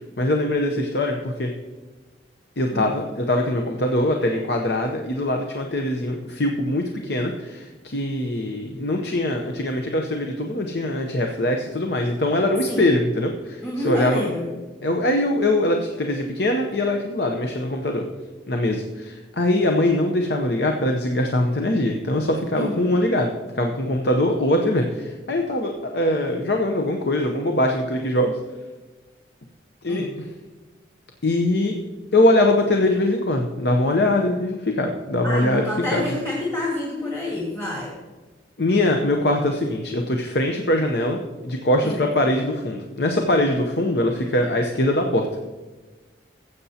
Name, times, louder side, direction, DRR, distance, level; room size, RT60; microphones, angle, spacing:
voice 1, 0.2-1.5 2.6-14.3 14.8-18.0 18.5-28.4 29.8-30.0 31.2-31.8 32.1-35.6 35.9-36.0 38.6-45.4, left 1 dB, 60° left, 3 dB, 0.8 m, -22 dB
voice 2, 13.6-14.5 22.5-22.9 29.9-30.1 35.2-37.9 41.8-42.0, left 1 dB, 15° left, -4 dB, 1.7 m, -28 dB
15.0 x 8.0 x 2.8 m, 1.3 s
head